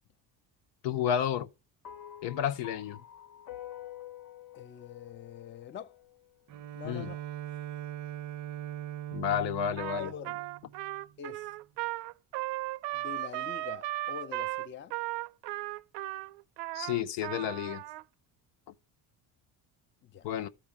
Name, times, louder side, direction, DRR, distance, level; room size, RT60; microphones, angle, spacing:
voice 1, 0.8-1.5 2.2-3.0 6.8-7.1 9.1-10.1 16.7-17.8 20.2-20.5, left 9 dB, 90° left, 1.0 m, -31 dB
sound 1, 1.8-6.3, left 11 dB, 60° left, 0.9 m, -48 dB
voice 2, 4.5-6.0 6.7-7.2 10.0-10.5 11.2-11.5 12.9-14.9 20.0-20.3, left 9 dB, 30° left, 0.5 m, -44 dB
Bowed string instrument, 6.5-11.1, right 12 dB, 45° right, 0.5 m, -41 dB
Trumpet, 9.8-18.0, right 18 dB, 85° right, 0.6 m, -36 dB
13.0 x 4.7 x 8.7 m
cardioid pair, 155°, 41 cm